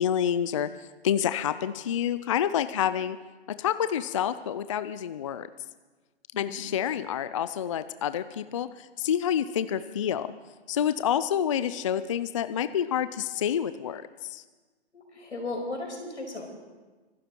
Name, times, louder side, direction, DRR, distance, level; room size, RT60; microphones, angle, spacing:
voice 1, 0.0-3.2 3.6-5.5 6.4-10.3 10.7-14.4, left 9 dB, 30° left, 13 dB, 0.4 m, -28 dB
voice 2, 6.3-6.6 14.9-16.5, left 2 dB, 90° left, 1 dB, 5.7 m, -36 dB
24.5 x 12.5 x 4.5 m, 1.3 s
hypercardioid pair, 140°, 33 cm